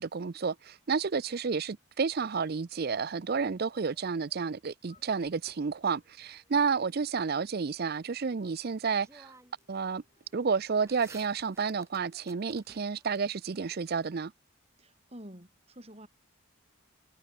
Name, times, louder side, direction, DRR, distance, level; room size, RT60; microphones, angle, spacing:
voice 1, 0.0-9.3 9.7-10.0 10.3-14.3, right 5 dB, 45° right, 0.5 m, -31 dB
sound 1, 2.9-4.6 4.8-8.0 8.4-12.4, left 3 dB, 35° left, 5.9 m, -70 dB
sound 2, 5.0-6.2 8.5-8.6 9.0-9.8 10.1-13.2, right 3 dB, 15° right, 6.0 m, -56 dB
voice 2, 14.8-16.1, equal, 30° right, 7.9 m, -49 dB
head